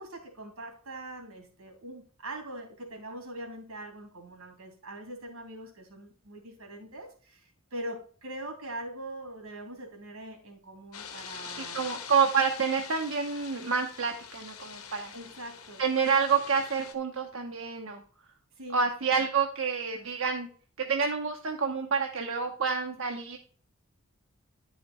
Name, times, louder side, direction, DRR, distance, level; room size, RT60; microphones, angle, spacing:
voice 1, 0.0-11.9 15.1-15.8 18.6-18.8, right 1 dB, 80° right, 3 dB, 2.8 m, -42 dB
sound 1, 10.9-16.9, left 7 dB, 80° left, 1.3 m, -44 dB
voice 2, 11.6-15.1 15.8-18.0 18.7-20.5 20.9-23.4, right 5 dB, 60° right, 3 dB, 0.8 m, -28 dB
10.0 x 5.0 x 4.2 m, 0.42 s
head